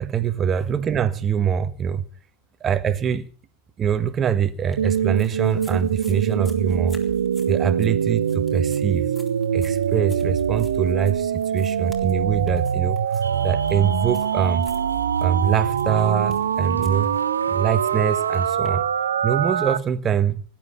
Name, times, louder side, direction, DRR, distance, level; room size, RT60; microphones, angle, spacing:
voice 1, 0.0-2.0 2.6-3.3 3.8-7.0 7.5-9.1 9.5-14.7 15.2-17.1 17.5-18.8 19.2-20.4, right 8 dB, 25° right, 1.3 m, -24 dB
sound 1, 4.7-18.7, left 2 dB, 10° left, 3.7 m, -50 dB
sound 2, 4.8-19.8, right 8 dB, 65° right, 0.7 m, -23 dB
sound 3, 13.2-18.6, right 3 dB, 80° right, 2.2 m, -37 dB
20.0 x 10.5 x 5.8 m
figure-of-eight pair, 90°, 0 cm